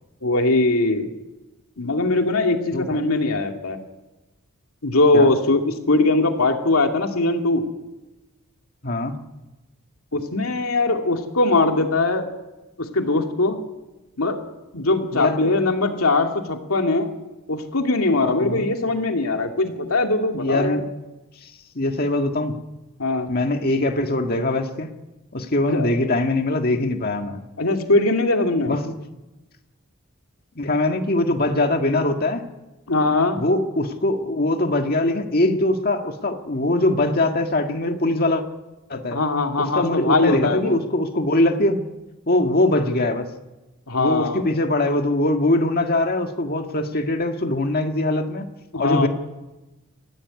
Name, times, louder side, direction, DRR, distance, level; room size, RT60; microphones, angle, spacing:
voice 1, 0.2-1.1 1.8-3.8 4.8-7.6 10.1-12.3 12.8-13.6 14.2-14.4 14.7-17.1 17.5-20.8 23.0-23.3 25.7-25.9 27.6-28.7 32.9-33.4 39.1-40.8 43.9-44.5 48.7-49.1, left 2 dB, 80° left, 3 dB, 2.5 m, -21 dB
voice 2, 8.8-9.2 15.1-15.4 18.4-18.7 20.3-20.9 21.4-22.6 23.3-24.9 25.3-27.4 28.7-29.0 30.6-32.4 33.3-38.4 38.9-39.2 39.6-41.9 42.3-43.3 44.0-48.5 48.8-49.1, left 2 dB, 45° left, 5 dB, 1.8 m, -22 dB
22.5 x 16.0 x 9.7 m, 1.1 s
head